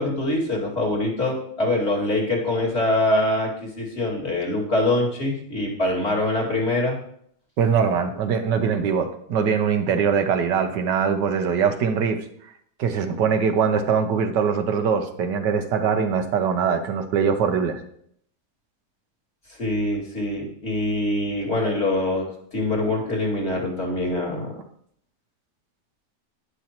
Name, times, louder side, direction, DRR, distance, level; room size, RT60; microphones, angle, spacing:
voice 1, 0.0-7.0 19.6-24.6, left 1 dB, 40° left, -3 dB, 2.6 m, -24 dB
voice 2, 7.6-12.2 12.8-17.8, right 6 dB, 90° right, 7 dB, 1.6 m, -22 dB
11.5 x 10.0 x 3.0 m, 0.67 s
omnidirectional pair, 1.8 m